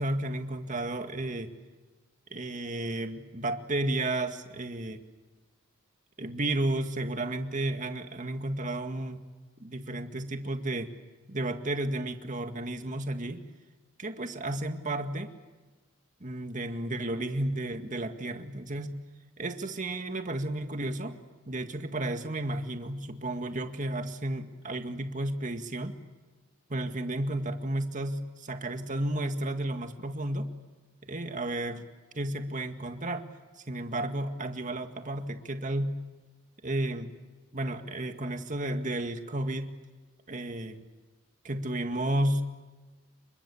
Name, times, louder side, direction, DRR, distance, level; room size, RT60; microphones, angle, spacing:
voice 1, 0.0-1.5 2.3-5.0 6.2-9.2 9.6-10.9 11.3-13.4 14.0-15.3 16.2-18.9 19.4-21.2 21.5-26.0 26.7-30.5 31.1-31.9 32.1-33.3 33.6-36.0 36.6-37.1 37.5-39.7 40.3-40.8 41.4-42.4, right 1 dB, 35° right, 6 dB, 2.0 m, -32 dB
28.5 x 24.5 x 7.3 m, 1.3 s
head